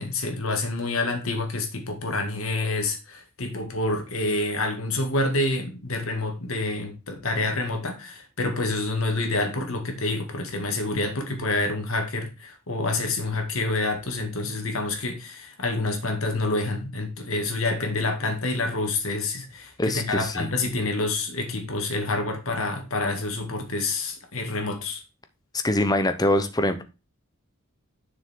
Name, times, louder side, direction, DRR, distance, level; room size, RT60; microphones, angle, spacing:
voice 1, 0.0-25.0, left 2 dB, 80° left, 5 dB, 2.1 m, -27 dB
voice 2, 19.8-20.5 25.6-26.8, left 1 dB, 20° left, 9 dB, 0.8 m, -23 dB
7.3 x 6.5 x 3.7 m, 0.29 s
head